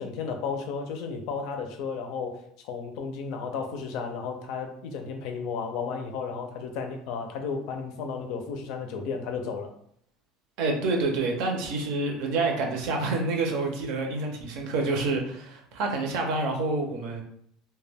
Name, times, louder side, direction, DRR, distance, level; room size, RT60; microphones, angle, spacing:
voice 1, 0.0-2.4 2.6-9.7, left 5 dB, 60° left, 5 dB, 0.4 m, -33 dB
voice 2, 10.6-17.2, right 3 dB, 60° right, 2 dB, 0.6 m, -28 dB
2.2 x 2.2 x 3.3 m, 0.67 s
cardioid pair, 160°, 0 cm